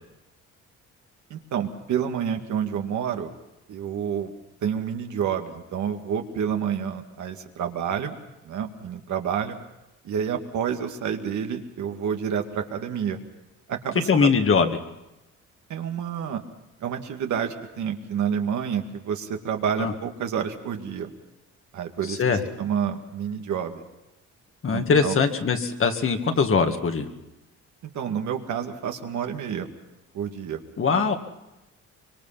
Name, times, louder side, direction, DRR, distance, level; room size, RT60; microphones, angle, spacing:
voice 1, 1.3-3.3 3.7-4.3 4.6-8.2 8.4-9.6 10.0-13.2 13.7-14.3 15.7-16.4 16.8-21.1 21.7-23.8 24.7-25.2 27.8-29.7 30.1-30.6, right 8 dB, 70° right, 4 dB, 2.2 m, -29 dB
voice 2, 14.1-14.8 19.8-19.9 22.1-22.4 24.6-27.1 30.8-31.2, left 5 dB, 45° left, 5 dB, 2.2 m, -21 dB
24.5 x 23.5 x 5.9 m, 0.97 s
cardioid pair, 90°, 30 cm